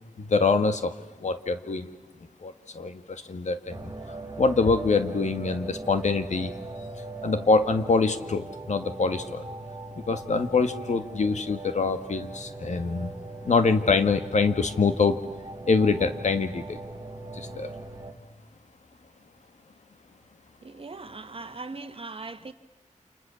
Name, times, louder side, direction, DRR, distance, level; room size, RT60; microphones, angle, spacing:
voice 1, 0.2-0.9 1.2-1.9 2.4-6.5 7.2-9.5 10.1-13.1 13.4-15.2 15.6-16.8 17.3-17.7, left 4 dB, 60° left, 1.9 m, -25 dB
sound 1, 3.7-18.1, right 2 dB, 25° right, 2.4 m, -40 dB
voice 2, 20.6-22.5, right 3 dB, 45° right, 1.6 m, -39 dB
30.0 x 28.0 x 7.1 m
wide cardioid pair, 110°, 13 cm